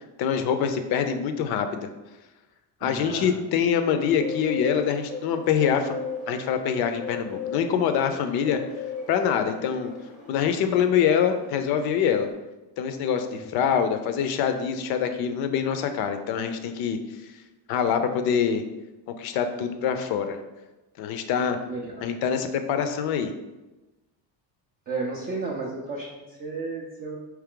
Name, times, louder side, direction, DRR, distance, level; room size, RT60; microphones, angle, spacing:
voice 1, 0.2-1.9 2.8-8.6 9.1-9.9 10.3-12.3 12.8-17.0 17.7-18.6 19.2-20.4 21.0-21.6 22.0-23.3, left 7 dB, 60° left, 8 dB, 0.5 m, -25 dB
voice 2, 2.8-3.4 13.3-13.7 21.7-22.1 24.9-27.2, right 3 dB, 25° right, -3 dB, 0.3 m, -33 dB
Bird, 4.0-12.3, left 5 dB, ahead, 0.7 m, -37 dB
4.6 x 3.1 x 3.7 m, 1.1 s
cardioid pair, 170°, 44 cm